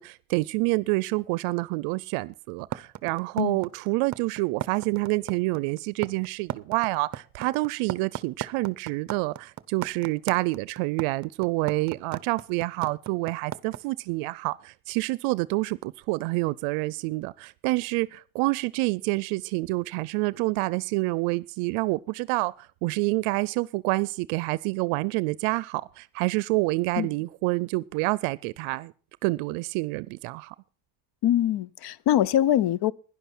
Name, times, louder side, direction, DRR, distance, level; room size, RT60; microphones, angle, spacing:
voice 1, 0.0-28.9 29.2-30.5, right 23 dB, 85° right, 0.5 m, -28 dB
sound 1, 2.7-13.8, right 11 dB, 35° right, 0.7 m, -35 dB
voice 2, 31.2-32.9, left 11 dB, 50° left, 0.7 m, -23 dB
11.0 x 10.5 x 6.0 m
cardioid pair, 95°, 50 cm